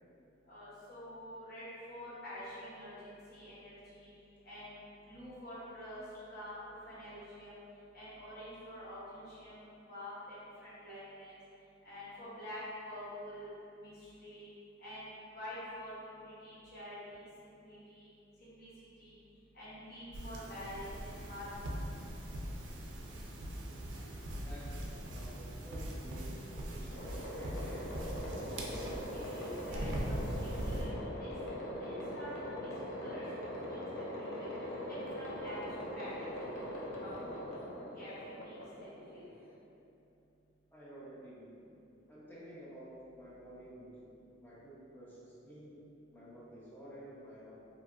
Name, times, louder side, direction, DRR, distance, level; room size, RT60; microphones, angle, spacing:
voice 1, 0.4-7.6 7.9-11.4 11.8-14.5 14.8-18.1 18.4-21.9 28.6-31.4 31.8-37.4 37.9-39.3, left 1 dB, 50° left, -11 dB, 0.9 m, -48 dB
sound 1, 20.1-30.9, right 1 dB, 65° right, 0.4 m, -41 dB
voice 2, 25.1-27.9 40.7-41.7 42.1-45.9 46.1-47.6, right 1 dB, 10° left, -8 dB, 0.5 m, -51 dB
sound 2, 26.9-39.5, equal, 90° left, 0.5 m, -41 dB
2.7 x 2.4 x 2.4 m, 2.7 s
head